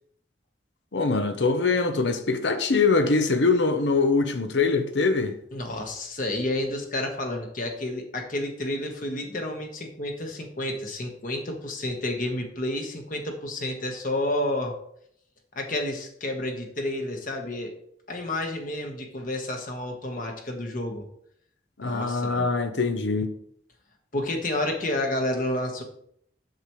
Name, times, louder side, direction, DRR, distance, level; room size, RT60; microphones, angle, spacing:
voice 1, 0.9-5.4 21.8-23.3, left 4 dB, 85° left, 0.8 m, -23 dB
voice 2, 5.5-14.7 15.5-17.7 18.1-21.0 21.8-22.5 24.1-25.8, left 1 dB, 50° left, 1.3 m, -30 dB
8.0 x 6.8 x 3.2 m
head